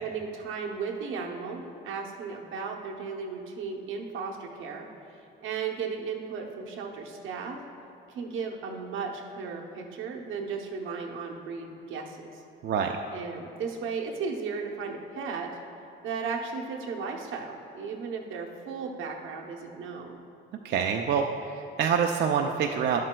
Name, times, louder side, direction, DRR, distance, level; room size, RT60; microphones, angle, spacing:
voice 1, 0.0-4.9 5.2-7.6 8.1-12.4 13.1-15.5 16.0-20.2, right 5 dB, 85° right, 1 dB, 0.8 m, -35 dB
voice 2, 12.6-13.0 20.6-23.0, right 7 dB, 60° right, 3 dB, 0.4 m, -26 dB
10.0 x 7.5 x 2.2 m, 2.8 s
cardioid pair, 90°, 20 cm